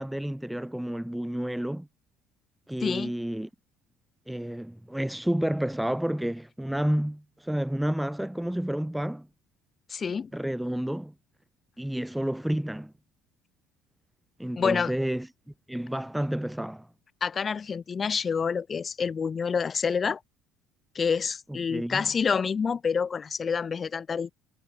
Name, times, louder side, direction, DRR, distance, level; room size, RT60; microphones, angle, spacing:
voice 1, 0.0-1.9 2.7-3.5 4.3-9.3 10.3-11.1 11.8-12.9 14.4-15.3 15.7-16.9 21.5-22.1, right 1 dB, 5° right, 0.5 m, -30 dB
voice 2, 2.8-3.1 9.9-10.3 14.6-14.9 17.2-20.2 20.9-24.3, left 6 dB, 35° left, 1.6 m, -28 dB
hypercardioid pair, 70°, 0 cm